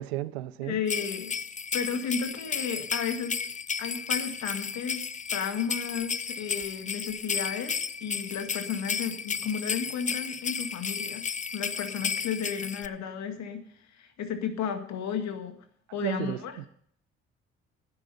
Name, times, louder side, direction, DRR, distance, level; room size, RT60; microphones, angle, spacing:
voice 1, 0.0-0.8 16.0-16.7, right 14 dB, 85° right, 0.5 m, -33 dB
voice 2, 0.6-1.4 1.7-3.4 3.8-11.2 11.5-13.6 13.9-15.6 15.9-16.5, left 7 dB, 65° left, 1.9 m, -33 dB
sound 1, 0.9-12.9, left 6 dB, 25° left, 0.6 m, -33 dB
12.0 x 9.7 x 5.5 m
hypercardioid pair, 45°, 31 cm